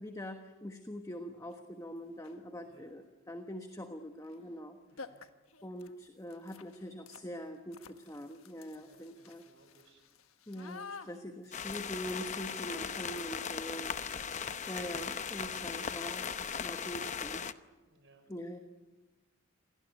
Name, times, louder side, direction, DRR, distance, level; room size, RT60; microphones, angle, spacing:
voice 1, 0.0-4.8 5.6-9.4 10.5-14.0 14.7-16.3 16.6-17.4 18.3-18.6, equal, 15° left, 5 dB, 1.3 m, -43 dB
sound 1, 1.5-1.6 2.1-2.5 4.2-4.4 4.6-4.7 5.0-13.8, left 4 dB, 90° left, 1.3 m, -52 dB
voice 2, 2.6-2.9 4.8-5.2 8.8-10.0 17.9-18.3, right 3 dB, 60° right, 5 dB, 6.2 m, -65 dB
sound 2, 11.5-17.5, left 6 dB, 35° left, 0.8 m, -38 dB
27.5 x 18.5 x 9.3 m, 1.2 s
head